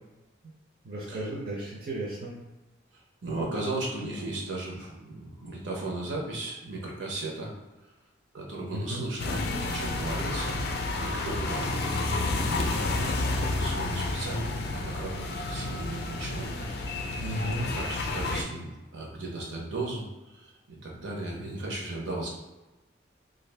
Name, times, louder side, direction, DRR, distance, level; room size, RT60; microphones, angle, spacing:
voice 1, 0.8-2.4 8.7-9.0 17.2-17.7, right 1 dB, 50° right, -5 dB, 0.5 m, -34 dB
voice 2, 3.2-7.5 8.3-10.7 11.0-11.9 12.3-16.7 17.2-22.3, right 2 dB, 80° right, -2 dB, 0.8 m, -36 dB
sound 1, 9.2-18.4, left 2 dB, 55° left, 0.3 m, -30 dB
2.5 x 2.4 x 3.3 m, 1.1 s
head